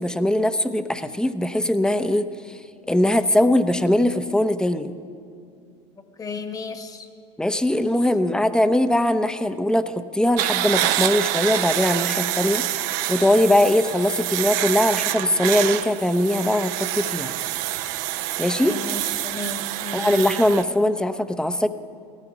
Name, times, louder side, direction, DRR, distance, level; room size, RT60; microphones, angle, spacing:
voice 1, 0.0-2.6 2.9-4.9 7.4-17.3 18.4-18.8 19.9-21.7, left 1 dB, 5° left, 11 dB, 0.8 m, -21 dB
voice 2, 6.1-7.1 18.6-20.3, left 3 dB, 25° left, 8 dB, 1.5 m, -34 dB
sound 1, 10.4-20.6, right 14 dB, 60° right, 0.8 m, -26 dB
16.5 x 14.0 x 6.1 m, 2.5 s
supercardioid pair, 100°, 15 cm